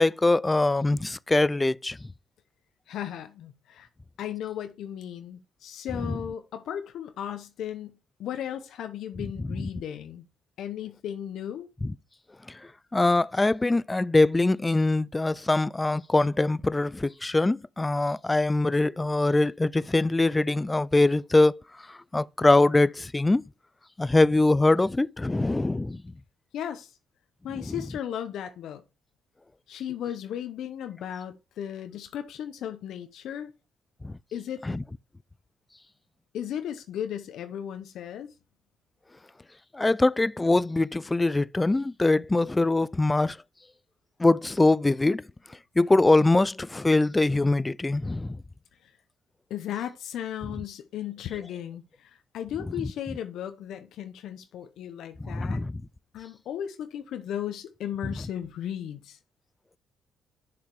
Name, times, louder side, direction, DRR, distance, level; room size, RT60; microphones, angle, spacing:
voice 1, 0.0-2.0 6.1-6.2 9.4-9.7 11.8-11.9 12.5-12.6 12.9-21.5 21.9-23.4 24.0-26.0 27.5-27.7 34.0-34.1 34.6-34.8 39.7-43.4 44.2-45.2 45.8-48.4 52.8-52.9 55.3-55.8, left 2 dB, 15° left, 0.3 m, -23 dB
voice 2, 2.9-3.9 4.2-10.2 10.6-11.7 26.5-27.0 27.4-28.8 29.7-33.5 34.3-34.7 36.3-38.3 48.8-48.9 49.5-55.6 56.1-59.2, left 10 dB, 75° left, 0.8 m, -36 dB
6.8 x 5.0 x 4.7 m
cardioid pair, 90°, 0 cm